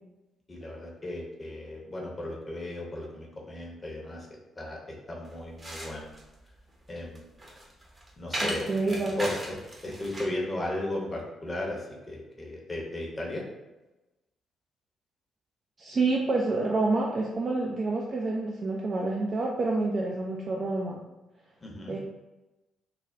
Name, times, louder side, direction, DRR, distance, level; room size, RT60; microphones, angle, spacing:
voice 1, 0.5-4.3 4.6-6.1 6.9-7.2 8.2-9.6 9.8-13.5 21.6-22.0, left 1 dB, 30° left, -2 dB, 0.8 m, -35 dB
sound 1, 5.2-10.4, equal, 25° right, 0.8 m, -38 dB
voice 2, 8.4-9.1 15.8-21.0 21.9-22.0, right 3 dB, 40° right, -2 dB, 0.4 m, -28 dB
3.2 x 2.2 x 2.5 m, 1.0 s
figure-of-eight pair, 40°, 0 cm